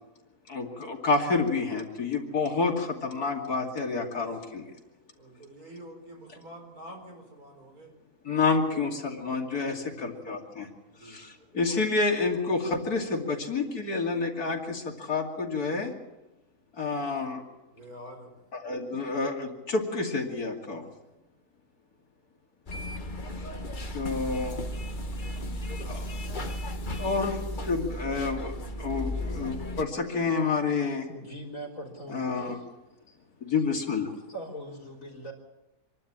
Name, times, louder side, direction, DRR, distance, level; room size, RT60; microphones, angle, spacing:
voice 1, 0.5-4.6 8.2-10.7 11.0-15.9 16.8-17.4 18.5-20.8 23.9-24.6 25.9-26.1 27.0-27.4 27.7-31.1 32.1-32.6 33.4-34.1, left 4 dB, 75° left, 2 dB, 3.1 m, -29 dB
voice 2, 5.2-7.9 8.7-8.9 9.4-10.2 10.9-11.3 17.7-18.4 20.8-21.0 23.3-23.5, right 1 dB, 70° right, 3 dB, 4.9 m, -47 dB
sound 1, 22.7-29.8, equal, 35° left, 1.3 m, -35 dB
voice 3, 31.0-32.6 33.1-33.2 34.3-35.3, right 1 dB, 55° left, 1 dB, 4.5 m, -41 dB
26.0 x 12.0 x 8.7 m, 1.0 s
omnidirectional pair, 1.6 m